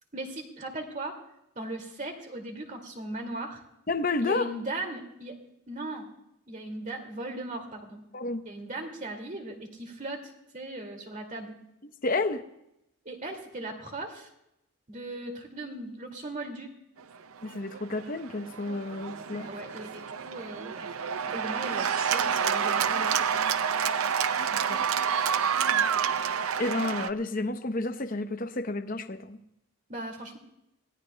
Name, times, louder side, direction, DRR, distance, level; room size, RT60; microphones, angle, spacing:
voice 1, 0.1-1.2 1.6-3.6 4.2-5.4 5.7-6.1 6.5-8.0 8.4-11.5 13.1-14.3 14.9-16.7 19.3-20.9 21.3-23.5 25.7-25.8 29.9-30.4, right 2 dB, 35° right, 3 dB, 2.2 m, -38 dB
voice 2, 3.9-4.5 8.1-8.4 11.8-12.4 17.4-19.5 24.5-24.8 26.6-29.4, left 2 dB, 40° left, 8 dB, 0.8 m, -31 dB
Cheering / Applause, 17.4-27.1, right 7 dB, 85° right, 0.6 m, -28 dB
26.0 x 18.0 x 2.2 m, 0.83 s
head